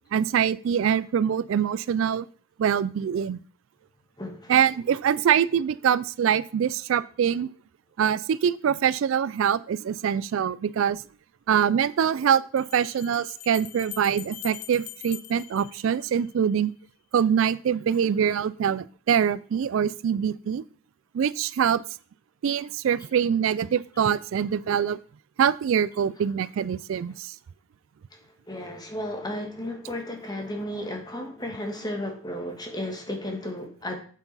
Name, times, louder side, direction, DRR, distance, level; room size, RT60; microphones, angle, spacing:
voice 1, 0.1-2.3 2.6-3.4 4.5-7.5 8.0-11.0 11.5-16.7 17.1-20.6 21.1-21.8 22.4-25.0 25.4-27.3, right 8 dB, 65° right, 18 dB, 0.3 m, -24 dB
voice 2, 4.2-4.5 28.5-34.0, left 1 dB, 20° left, 3 dB, 1.6 m, -33 dB
sound 1, 10.9-11.0 12.6-16.5, left 14 dB, 90° left, 0.7 m, -43 dB
8.3 x 7.6 x 4.0 m, 0.43 s
head